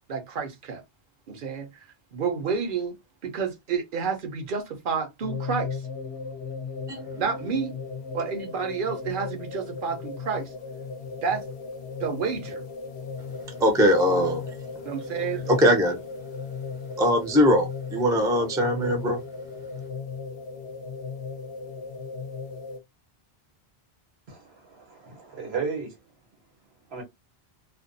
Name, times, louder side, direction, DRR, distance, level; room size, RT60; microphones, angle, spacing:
voice 1, 0.1-0.8 1.3-1.7 2.1-3.0 3.2-5.8 7.1-7.7 8.1-10.5 11.2-11.4 12.0-12.6 14.8-15.7, right 6 dB, 55° right, 0.8 m, -30 dB
sound 1, 5.2-22.8, left 5 dB, 70° left, 0.7 m, -36 dB
voice 2, 13.6-14.4 15.5-16.0 17.0-19.2, equal, 5° right, 0.4 m, -21 dB
voice 3, 24.3-25.9 26.9-27.0, right 5 dB, 75° right, 1.2 m, -34 dB
2.4 x 2.2 x 2.5 m
omnidirectional pair, 1.1 m